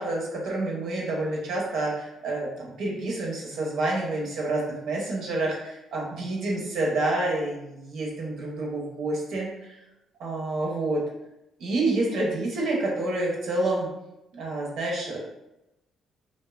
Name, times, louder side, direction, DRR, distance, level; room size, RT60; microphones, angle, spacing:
voice 1, 0.0-9.8 10.2-11.0 11.6-13.9 14.3-15.2, right 2 dB, 80° right, -2 dB, 0.7 m, -28 dB
2.5 x 2.1 x 2.3 m, 0.90 s
cardioid pair, 90°, 0 cm